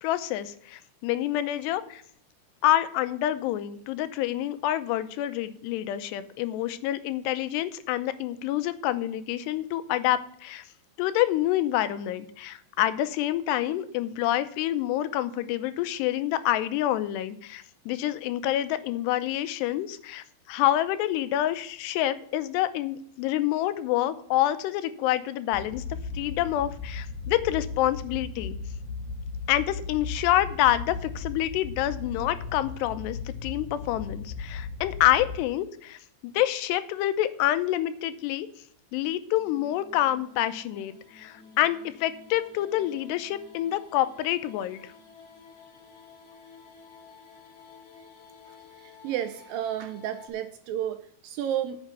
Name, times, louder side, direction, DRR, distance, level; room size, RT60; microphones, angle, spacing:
voice 1, 0.0-2.0 2.6-10.6 11.0-25.8 26.1-28.6 29.5-38.5 38.9-44.9, left 13 dB, 90° left, 12 dB, 2.8 m, -27 dB
sound 1, 25.5-35.4, left 4 dB, 70° left, 2.7 m, -37 dB
sound 2, 39.3-50.3, left 5 dB, 55° left, 1.8 m, -52 dB
voice 2, 49.0-51.8, right 10 dB, 80° right, 8 dB, 2.1 m, -31 dB
9.0 x 5.7 x 8.1 m, 0.65 s
omnidirectional pair, 4.7 m